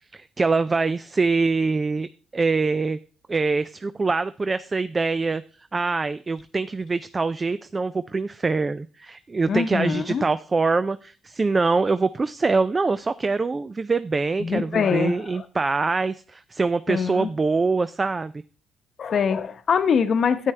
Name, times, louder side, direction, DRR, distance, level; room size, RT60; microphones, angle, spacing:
voice 1, 0.1-2.1 2.3-3.0 3.3-5.4 5.7-18.3, right 4 dB, 30° right, 13 dB, 0.4 m, -24 dB
voice 2, 9.5-10.2 14.4-15.4 16.9-17.3 19.0-20.5, left 6 dB, 55° left, 10 dB, 0.9 m, -23 dB
9.6 x 9.0 x 3.3 m, 0.38 s
cardioid pair, 90°, 0 cm